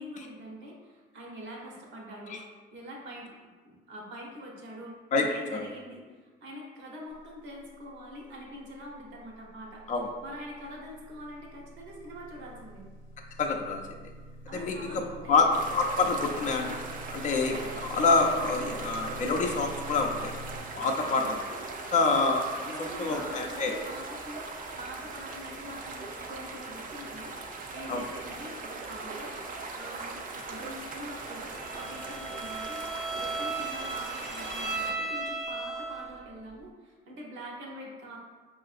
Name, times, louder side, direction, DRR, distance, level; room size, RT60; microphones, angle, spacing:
voice 1, 0.0-2.4 2.7-3.3 3.6-5.0 5.2-9.8 10.2-12.8 14.5-15.6 21.0-21.3 22.7-30.2 30.5-38.2, equal, 75° right, -2 dB, 0.9 m, -44 dB
sound 1, 9.8-20.6, right 1 dB, 85° left, 0.6 m, -46 dB
voice 2, 13.4-13.8 14.5-16.8 17.1-20.3 20.8-21.6 21.9-23.8 27.9-28.0, left 3 dB, 40° left, 2 dB, 0.4 m, -27 dB
sound 2, 15.5-34.9, right 3 dB, 45° right, 0.5 m, -40 dB
Bowed string instrument, 31.5-36.2, right 3 dB, ahead, 0.6 m, -36 dB
4.6 x 2.4 x 2.4 m, 1.4 s
cardioid pair, 90°, 20 cm